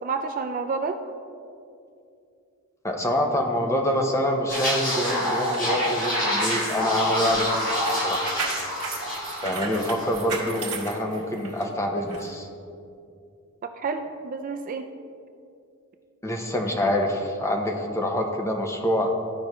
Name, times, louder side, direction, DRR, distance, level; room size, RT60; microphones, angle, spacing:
voice 1, 0.0-1.0 13.6-14.9, right 4 dB, 35° right, 6 dB, 0.3 m, -29 dB
voice 2, 2.8-7.5 7.9-8.3 9.4-12.5 16.2-19.1, equal, 15° left, 2 dB, 0.7 m, -26 dB
sound 1, 4.5-10.2 10.5-10.7, equal, 40° left, 2.0 m, -27 dB
sound 2, 5.3-11.6 12.1-12.2, right 4 dB, 85° right, 1.4 m, -36 dB
13.5 x 5.0 x 3.1 m, 2.5 s
head